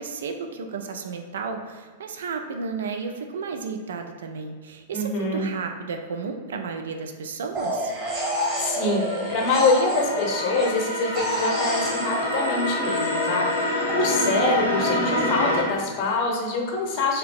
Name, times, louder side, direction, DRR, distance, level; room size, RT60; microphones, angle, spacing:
voice 1, 0.0-7.9, right 5 dB, 65° right, 5 dB, 0.3 m, -33 dB
voice 2, 4.9-5.5 8.6-9.0 9.3-17.2, left 3 dB, 35° left, 1 dB, 0.7 m, -25 dB
sound 1, 7.5-10.8 11.2-14.0, right 1 dB, 20° right, 1.1 m, -29 dB
sound 2, 7.9-15.6, left 1 dB, 90° right, 0.7 m, -27 dB
2.8 x 2.6 x 3.5 m, 1.5 s
figure-of-eight pair, 95°, 0 cm